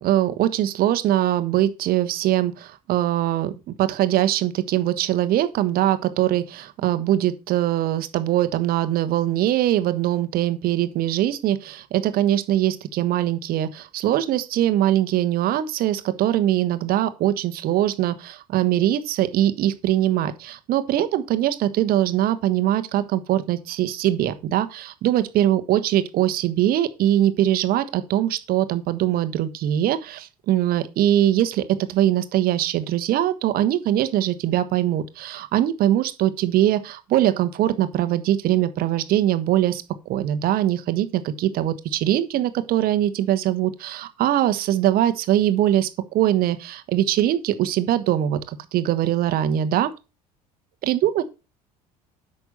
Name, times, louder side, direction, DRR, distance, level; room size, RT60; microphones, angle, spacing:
voice 1, 0.0-3.5 3.8-49.9 50.8-51.2, right 12 dB, 50° right, 1.3 m, -22 dB
9.2 x 6.1 x 5.4 m
figure-of-eight pair, 60°, 20 cm